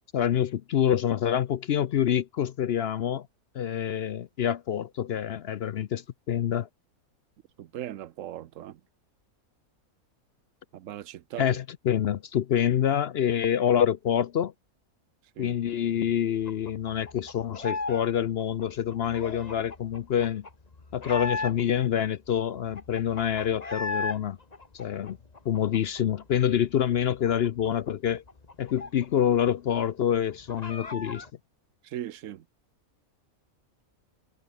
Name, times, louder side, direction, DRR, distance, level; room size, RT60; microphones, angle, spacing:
voice 1, 0.1-3.3 3.5-6.7 11.4-14.5 15.4-20.4 20.9-24.4 24.7-25.2 25.5-28.2 28.6-31.2, left 9 dB, 60° left, 0.7 m, -26 dB
voice 2, 7.6-8.8 10.7-11.5 15.4-15.6 31.8-32.4, right 12 dB, 65° right, 1.0 m, -38 dB
sound 1, 16.5-18.1 18.3-21.9 22.3-22.4 22.6-24.2 24.5-26.2 26.6-26.7 27.0-29.4 29.7-29.8 30.1-31.3, left 3 dB, 25° left, 1.7 m, -36 dB
omnidirectional pair, 1.5 m